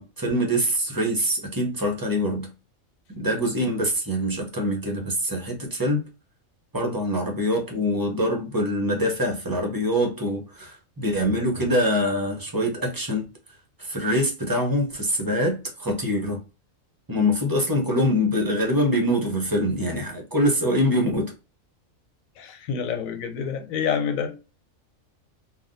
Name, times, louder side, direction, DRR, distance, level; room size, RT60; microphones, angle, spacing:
voice 1, 0.0-2.5 3.1-6.0 6.7-13.2 13.8-16.4 17.1-21.3, equal, 20° right, 0.6 m, -24 dB
voice 2, 22.4-24.3, left 7 dB, 85° left, 1.0 m, -27 dB
3.5 x 2.3 x 2.5 m
omnidirectional pair, 1.4 m